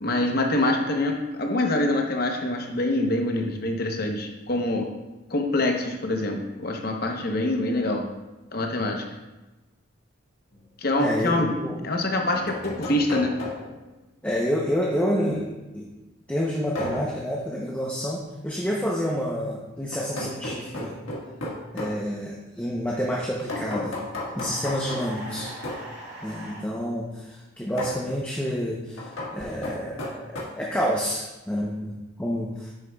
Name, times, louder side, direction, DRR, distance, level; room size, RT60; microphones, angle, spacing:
voice 1, 0.0-4.9 5.3-8.1 8.5-9.0 10.8-11.5 11.8-13.3, left 2 dB, 45° left, 2 dB, 0.8 m, -25 dB
sound 1, 10.5-10.6 11.9-13.9 16.8-17.2 19.9-22.0 23.5-25.9 27.8-28.0 29.0-30.4, left 2 dB, 75° left, 1.6 m, -34 dB
voice 2, 11.0-11.7 14.2-15.8 16.3-20.9 21.7-24.0 24.3-25.5 26.2-32.7, equal, 5° left, -4 dB, 0.6 m, -28 dB
sound 2, 24.4-26.7, right 1 dB, 35° right, 2.4 m, -40 dB
9.1 x 6.8 x 2.3 m, 1.1 s
head